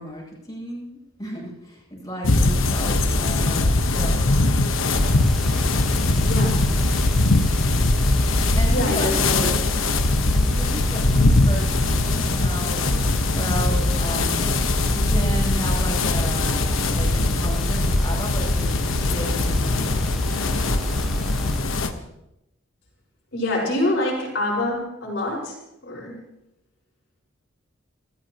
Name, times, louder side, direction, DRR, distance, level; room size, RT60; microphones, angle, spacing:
voice 1, 0.0-4.5 8.6-9.3 10.3-14.5 14.8-20.1, equal, 20° left, -4 dB, 7.9 m, -33 dB
sound 1, 2.2-21.9, left 2 dB, 80° left, 1.2 m, -21 dB
sound 2, 4.9-21.6, equal, ahead, 0.6 m, -34 dB
voice 2, 6.2-6.6 8.7-9.6 23.3-25.5 25.8-26.1, left 1 dB, 60° left, -4 dB, 5.3 m, -25 dB
28.5 x 14.5 x 3.0 m, 0.89 s
head